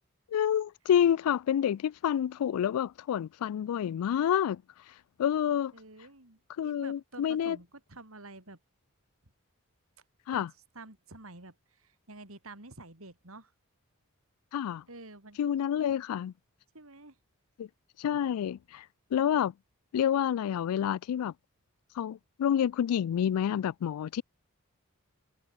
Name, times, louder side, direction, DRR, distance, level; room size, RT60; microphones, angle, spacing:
voice 1, 0.3-4.6 5.2-5.7 6.6-7.6 10.3-10.5 14.5-14.8 15.4-16.3 17.6-17.7 18.0-18.8 19.1-19.5 19.9-21.3 22.0-24.2, left 9 dB, 90° left, 0.3 m, -28 dB
voice 2, 5.7-6.4 6.6-8.6 10.3-10.5 10.7-13.5 14.9-15.5 16.7-17.2, right 2 dB, 75° right, 4.1 m, -49 dB
head